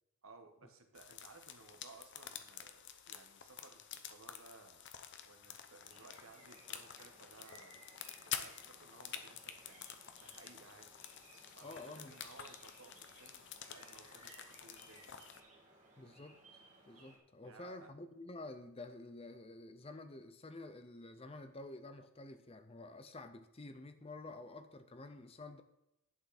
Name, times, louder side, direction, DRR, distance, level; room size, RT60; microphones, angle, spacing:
voice 1, 0.2-4.9 5.2-7.8 8.2-9.9 10.2-10.9 11.5-15.3 17.4-17.9, right 3 dB, 65° right, 1.4 m, -59 dB
sound 1, 0.9-15.4, left 9 dB, 55° left, 0.8 m, -49 dB
sound 2, 5.9-17.2, right 2 dB, 30° right, 1.8 m, -62 dB
voice 2, 11.6-12.1 16.0-25.6, left 2 dB, 25° left, 0.6 m, -50 dB
11.0 x 8.4 x 4.2 m
head